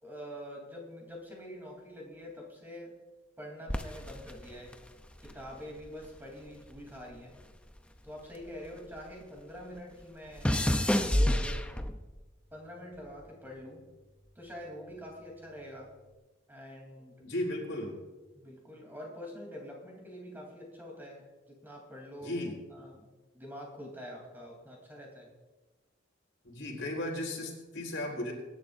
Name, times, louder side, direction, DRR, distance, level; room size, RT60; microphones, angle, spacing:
voice 1, 0.0-3.0 3.4-4.8 5.2-7.4 8.0-10.5 11.0-11.6 12.5-13.8 14.3-15.9 16.5-17.2 18.3-22.4 22.7-23.0 23.3-25.3, equal, 10° right, -1 dB, 3.3 m, -45 dB
sound 1, 3.7-6.2 6.5-9.1 9.4-12.2 12.9-13.3, left 1 dB, 5° left, 0.6 m, -31 dB
voice 2, 17.2-18.0 22.2-22.6 26.4-28.3, left 1 dB, 80° left, -1 dB, 4.1 m, -35 dB
23.0 x 11.0 x 2.6 m, 1.2 s
head